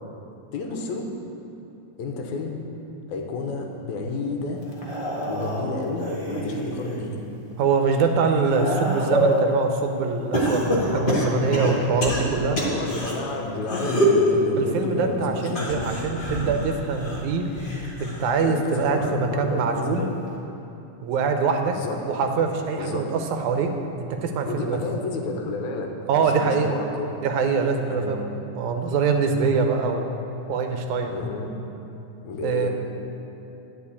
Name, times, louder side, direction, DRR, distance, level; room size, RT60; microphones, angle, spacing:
voice 1, 0.5-1.1 2.0-2.6 3.1-4.6 5.3-7.2 10.4-11.8 12.5-15.9 18.4-20.1 21.7-22.0 22.7-23.1 24.5-25.9 26.2-27.2 27.9-28.2 31.1-31.5 32.2-32.7, left 3 dB, 80° left, 2 dB, 2.3 m, -31 dB
sound 1, 4.7-7.0 7.5-9.5 10.3-13.1 13.6-14.3 15.4-18.3 18.7-19.1 20.3-20.4, equal, 35° left, 0.8 m, -26 dB
voice 2, 7.6-12.6 14.6-17.5 18.0-20.0 21.0-24.8 26.1-26.7 27.2-30.1 30.5-31.2 32.4-32.7, right 5 dB, 80° right, 5 dB, 2.2 m, -24 dB
10.5 x 5.2 x 8.4 m, 2.9 s
omnidirectional pair, 3.3 m